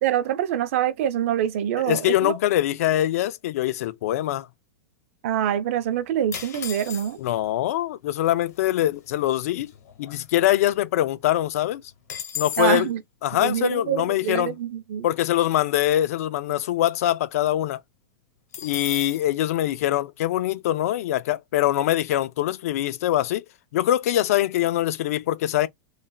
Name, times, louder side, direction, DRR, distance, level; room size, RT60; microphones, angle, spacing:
voice 1, 0.0-2.3 5.2-7.2 12.6-13.0 13.4-15.1, right 10 dB, 60° right, 0.6 m, -25 dB
voice 2, 1.8-4.5 7.2-9.7 10.0-11.8 12.4-12.9 13.2-14.5 15.0-17.8 18.6-23.5 23.7-25.7, left 13 dB, 70° left, 0.4 m, -23 dB
sound 1, 6.3-7.4 8.2-8.3 8.5-8.8 9.3-10.7 11.1-11.2 11.5-12.9 18.5-19.3, left 9 dB, 90° left, 0.9 m, -36 dB
3.2 x 2.4 x 2.2 m
supercardioid pair, 145°, 8 cm